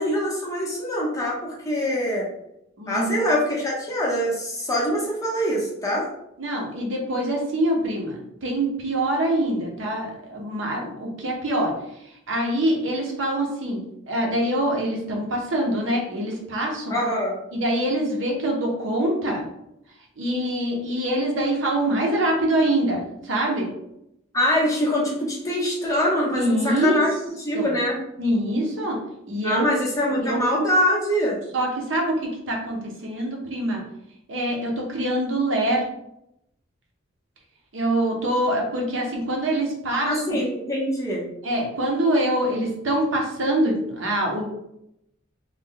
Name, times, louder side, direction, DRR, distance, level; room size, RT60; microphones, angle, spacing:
voice 1, 0.0-2.3 2.9-6.1 16.9-17.4 24.3-27.1 27.4-28.0 29.4-31.4 39.9-41.3, equal, 15° left, -4 dB, 0.8 m, -24 dB
voice 2, 2.8-3.2 6.4-11.7 12.3-13.8 14.1-17.0 17.5-19.4 20.2-23.7 26.3-27.0 27.5-27.7 28.2-29.0 29.3-29.7 30.2-30.4 31.5-33.8 34.3-35.9 37.7-40.4 41.4-44.4, right 1 dB, 75° right, 0 dB, 0.8 m, -24 dB
3.2 x 2.2 x 3.6 m, 0.81 s
head